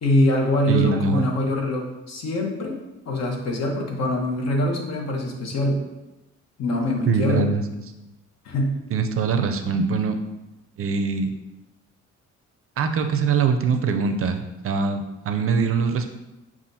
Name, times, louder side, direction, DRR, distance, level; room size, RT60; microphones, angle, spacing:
voice 1, 0.0-2.8 3.0-5.8 6.6-7.4 8.4-8.7, left 1 dB, 60° left, 0 dB, 1.0 m, -23 dB
voice 2, 0.7-1.3 7.1-7.6 8.0-8.1 8.9-10.2 10.8-11.3 12.8-16.1, right 5 dB, 50° right, 7 dB, 0.5 m, -23 dB
7.1 x 2.4 x 2.7 m, 1.0 s
cardioid pair, 90°, 30 cm